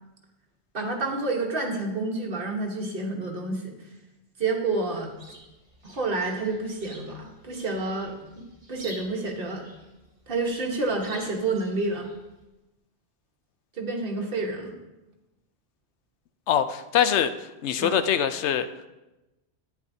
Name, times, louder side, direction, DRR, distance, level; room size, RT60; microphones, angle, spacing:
voice 1, 0.7-3.7 4.4-5.1 5.8-9.7 10.3-12.1 13.7-14.8 17.8-18.0, right 3 dB, 55° right, 1 dB, 1.4 m, -29 dB
Chirp tweet, 4.8-12.4, right 1 dB, 30° right, 2.2 m, -50 dB
voice 2, 16.5-17.3 17.6-18.7, left 9 dB, 85° left, 11 dB, 0.9 m, -23 dB
10.5 x 9.4 x 2.7 m, 1.0 s
omnidirectional pair, 1.1 m